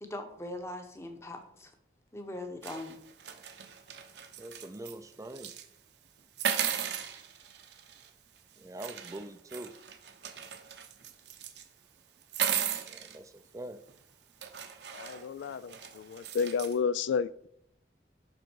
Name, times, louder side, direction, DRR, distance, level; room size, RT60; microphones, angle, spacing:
voice 1, 0.0-1.7 2.1-3.0 3.3-3.4, left 1 dB, 15° left, 5 dB, 0.9 m, -41 dB
sound 1, 2.6-4.9 5.3-5.6 6.4-8.1 8.8-11.6 12.2-13.2 13.9-14.0 14.4-16.8, right 8 dB, 75° right, 0.8 m, -36 dB
voice 2, 4.4-5.5 8.6-9.7 12.9-13.8, right 1 dB, 20° right, 9 dB, 0.4 m, -44 dB
voice 3, 14.9-17.5, left 6 dB, 85° left, 17 dB, 0.3 m, -31 dB
11.0 x 3.8 x 4.6 m, 0.72 s
head